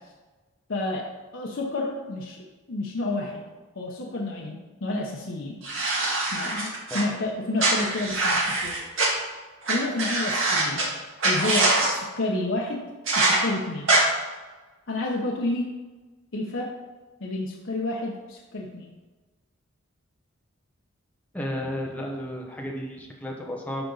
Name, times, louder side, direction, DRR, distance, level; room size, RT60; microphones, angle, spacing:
voice 1, 0.7-1.1 1.3-2.4 2.7-3.4 3.8-5.6 6.3-8.8 9.7-10.8 11.2-12.8 13.1-13.9 14.9-15.7 16.3-16.7 17.2-18.9, left 2 dB, 65° left, -2 dB, 0.8 m, -30 dB
sound 1, 5.6-7.0 7.6-9.1 9.7-9.8 10.0-10.8 11.2-11.9 13.1-13.4 13.9-14.0, right 2 dB, 70° right, 2.0 m, -23 dB
voice 2, 21.3-23.9, equal, 5° left, -1 dB, 0.9 m, -33 dB
11.5 x 4.0 x 3.9 m, 1.3 s
head